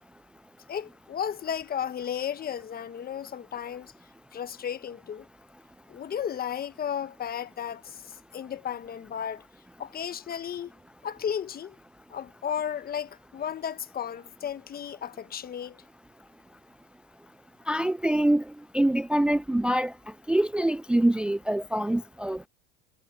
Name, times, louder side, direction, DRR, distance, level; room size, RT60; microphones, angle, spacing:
voice 1, 0.7-3.9 4.3-5.3 5.9-9.4 9.8-10.7 11.0-11.7 12.1-15.8, left 8 dB, 30° left, 1.5 m, -34 dB
voice 2, 17.7-18.4 18.7-19.9 20.3-22.5, right 1 dB, 5° right, 0.5 m, -24 dB
hypercardioid pair, 95°, 30 cm